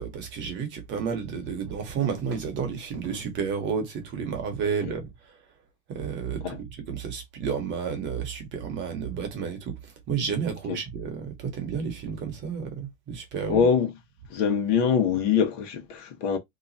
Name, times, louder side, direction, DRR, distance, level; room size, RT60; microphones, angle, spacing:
voice 1, 0.0-5.4 5.9-13.6, right 6 dB, 30° right, 1.1 m, -31 dB
voice 2, 13.5-13.9 14.3-16.4, left 7 dB, 45° left, 1.2 m, -23 dB
3.0 x 2.3 x 4.1 m
supercardioid pair, 145°, 37 cm